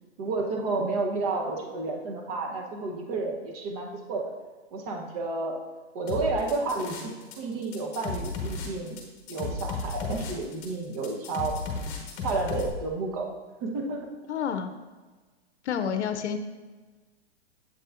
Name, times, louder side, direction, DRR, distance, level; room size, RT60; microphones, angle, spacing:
voice 1, 0.2-4.3 4.7-5.6 5.9-11.6 12.2-13.3 13.6-14.1, right 3 dB, 35° right, 2 dB, 0.9 m, -31 dB
sound 1, 6.1-7.3 7.6-12.7, left 3 dB, 30° left, 1.1 m, -34 dB
voice 2, 14.3-14.7 15.6-16.4, left 7 dB, 90° left, 8 dB, 0.6 m, -29 dB
7.7 x 5.5 x 2.5 m, 1.3 s
hypercardioid pair, 155°, 33 cm